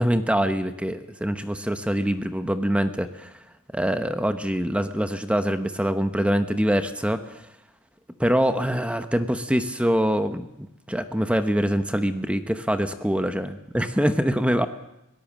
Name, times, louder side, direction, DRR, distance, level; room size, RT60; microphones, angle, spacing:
voice 1, 0.0-3.3 3.7-7.4 8.2-10.5 10.9-14.7, equal, 5° right, 9 dB, 0.9 m, -24 dB
23.5 x 18.0 x 7.4 m, 0.86 s
head